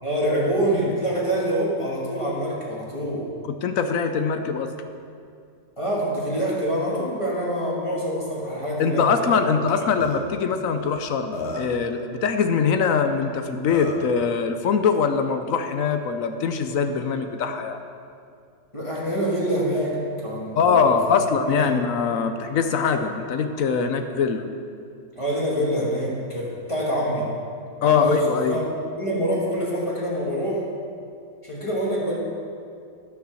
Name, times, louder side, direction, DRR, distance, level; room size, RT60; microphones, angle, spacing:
voice 1, 0.0-3.3 5.8-9.4 9.7-9.8 18.7-21.0 21.5-21.7 25.2-27.3 27.8-28.7 29.0-30.7 31.4-32.2, equal, 15° left, -5 dB, 1.9 m, -25 dB
voice 2, 3.4-4.7 8.8-17.8 20.6-24.5 27.8-28.6, left 6 dB, 65° left, 7 dB, 0.9 m, -22 dB
Burping eructation, 9.7-9.8 10.0-10.2 11.0-11.1 11.3-11.8 13.2-13.3 13.7-14.1, left 3 dB, 45° left, 1.1 m, -32 dB
13.0 x 5.9 x 6.3 m, 2.4 s
omnidirectional pair, 2.0 m